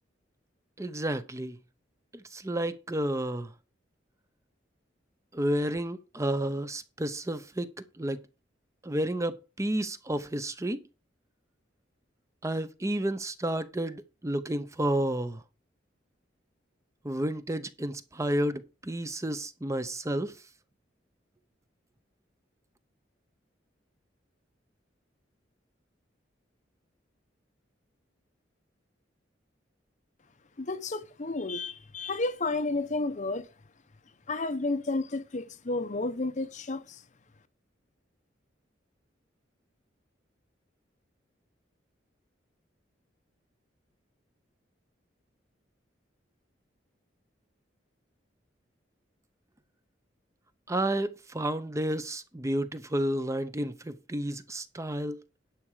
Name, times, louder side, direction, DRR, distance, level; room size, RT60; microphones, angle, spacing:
voice 1, 0.8-1.6 2.1-3.5 5.3-7.7 8.0-8.2 8.8-10.8 12.4-15.4 17.0-20.4 50.7-55.2, right 1 dB, 15° right, 0.7 m, -31 dB
voice 2, 30.6-33.5 34.3-37.0, left 2 dB, 40° left, 0.8 m, -31 dB
11.0 x 5.9 x 4.9 m
head